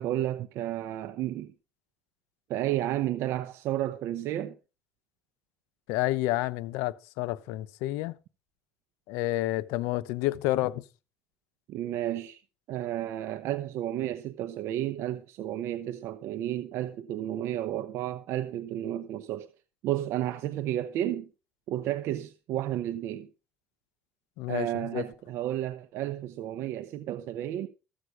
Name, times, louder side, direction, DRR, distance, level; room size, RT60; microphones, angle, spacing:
voice 1, 0.0-1.5 2.5-4.6 11.7-12.4 12.7-19.5 19.8-21.3 21.7-23.3 24.5-27.7, right 13 dB, 70° right, 0.8 m, -32 dB
voice 2, 5.9-8.1 9.1-10.8 24.4-25.0, left 17 dB, 90° left, 0.8 m, -29 dB
14.5 x 8.2 x 4.8 m
cardioid pair, 100°, 5 cm